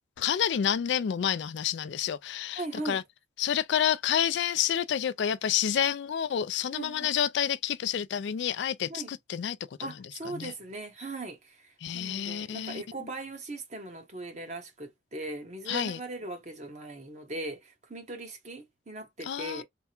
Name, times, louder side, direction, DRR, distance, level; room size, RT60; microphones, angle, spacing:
voice 1, 0.2-3.0 3.4-9.6 10.3-10.5 11.8-12.8 15.7-16.0 19.2-19.6, left 9 dB, 60° left, 0.3 m, -29 dB
voice 2, 2.6-3.0 6.7-7.1 8.9-9.1 9.8-19.6, right 2 dB, 35° right, 1.1 m, -39 dB
3.5 x 2.1 x 4.3 m
head